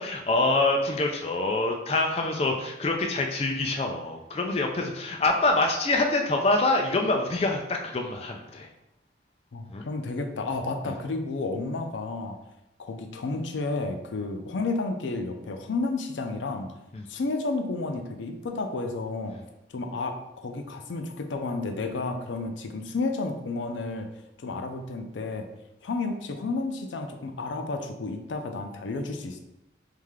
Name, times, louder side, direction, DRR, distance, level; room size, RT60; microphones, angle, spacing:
voice 1, 0.0-8.7 9.7-9.9 10.8-10.9 16.9-17.0, left 2 dB, 35° left, 2 dB, 0.4 m, -25 dB
voice 2, 9.5-12.4 12.8-16.8 17.1-19.4 19.7-24.1 24.4-25.5 25.8-29.4, left 3 dB, 90° left, 6 dB, 0.5 m, -31 dB
3.4 x 3.2 x 3.5 m, 0.91 s
head